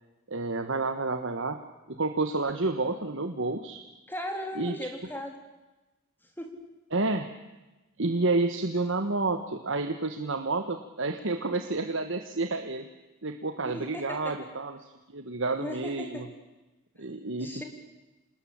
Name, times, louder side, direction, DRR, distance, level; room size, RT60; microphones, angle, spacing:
voice 1, 0.3-1.6 1.9-3.8 4.5-4.7 6.9-7.3 8.0-12.9 13.2-14.8 15.1-16.2 17.0-17.6, right 3 dB, 55° right, 7 dB, 1.4 m, -30 dB
voice 2, 4.1-5.4 6.2-6.5 13.6-14.4 15.5-16.2 17.4-17.6, equal, 10° left, 3 dB, 3.6 m, -37 dB
27.5 x 20.0 x 8.8 m, 1.1 s
head